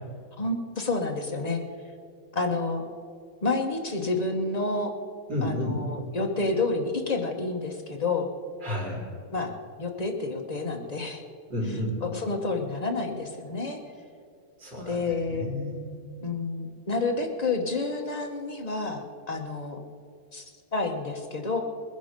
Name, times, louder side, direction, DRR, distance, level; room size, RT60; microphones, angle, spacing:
voice 1, 0.4-1.6 2.3-2.8 3.4-4.9 5.4-8.3 9.3-9.5 9.8-11.2 12.0-13.8 14.8-15.5 16.2-19.8 20.3-20.4 20.7-21.6, left 3 dB, 30° left, 3 dB, 1.0 m, -29 dB
voice 2, 5.3-5.8 8.6-9.0 11.5-12.0 14.6-15.8, left 1 dB, 85° right, -4 dB, 4.6 m, -31 dB
20.0 x 10.5 x 5.2 m, 2.3 s
omnidirectional pair, 1.9 m